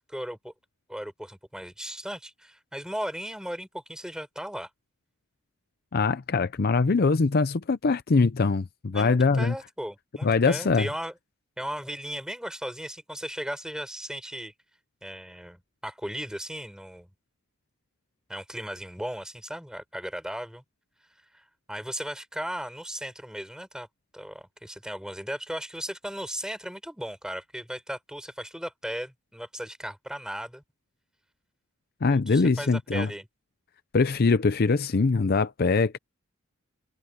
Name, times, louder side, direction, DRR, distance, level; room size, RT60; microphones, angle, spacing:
voice 1, 0.1-0.5 0.9-4.7 8.9-11.1 11.6-14.5 15.0-17.1 18.3-20.6 21.3-23.9 24.1-30.6 32.1-33.3, equal, 5° right, 5.5 m, -36 dB
voice 2, 5.9-9.5 10.2-10.9 32.0-33.1 33.9-36.0, left 4 dB, 45° left, 0.5 m, -23 dB
head